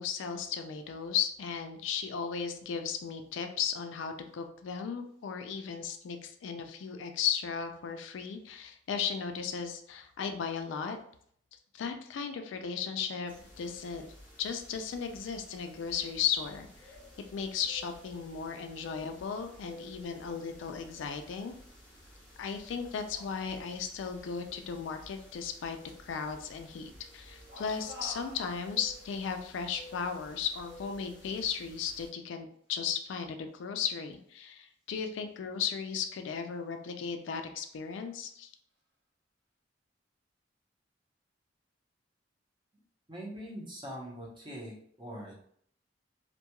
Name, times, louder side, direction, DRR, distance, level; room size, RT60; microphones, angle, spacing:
voice 1, 0.0-11.0 11.7-14.1 14.4-16.9 17.3-21.5 22.4-38.5, left 7 dB, 80° left, 6 dB, 0.3 m, -36 dB
sound 1, 13.3-32.1, left 1 dB, 10° left, 0.8 m, -54 dB
sound 2, 22.7-23.9 27.5-29.1 31.4-31.6 37.0-37.1 37.8-38.1, equal, 65° right, 0.8 m, -51 dB
voice 2, 43.1-45.3, equal, 25° right, -4 dB, 0.7 m, -42 dB
2.2 x 2.2 x 2.8 m, 0.63 s
head